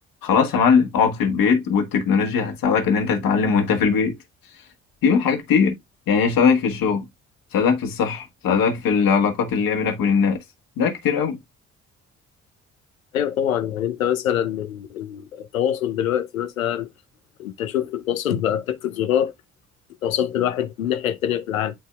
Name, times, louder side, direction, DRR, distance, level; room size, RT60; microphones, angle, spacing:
voice 1, 0.2-4.1 5.0-5.8 6.1-7.1 7.5-10.4 10.8-11.4, left 6 dB, 55° left, 1.6 m, -20 dB
voice 2, 13.1-16.9 17.4-19.3 20.0-21.7, left 10 dB, 80° left, 0.7 m, -24 dB
11.0 x 4.1 x 2.3 m
figure-of-eight pair, 40°, 40 cm